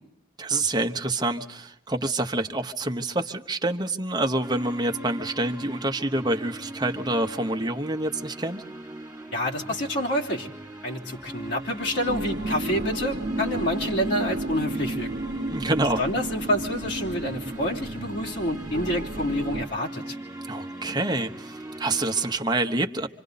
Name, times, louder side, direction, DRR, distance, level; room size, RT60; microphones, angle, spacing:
voice 1, 0.4-8.6 15.5-16.0 20.5-23.1, right 2 dB, 20° right, 5 dB, 0.9 m, -27 dB
sound 1, 4.4-22.4, right 1 dB, 5° right, 3.4 m, -40 dB
voice 2, 9.3-10.5 10.8-15.1 16.0-20.2, equal, 70° left, -3 dB, 3.2 m, -28 dB
sound 2, 12.1-19.6, right 2 dB, 65° right, 0.9 m, -32 dB
26.5 x 26.0 x 4.0 m, 0.82 s
head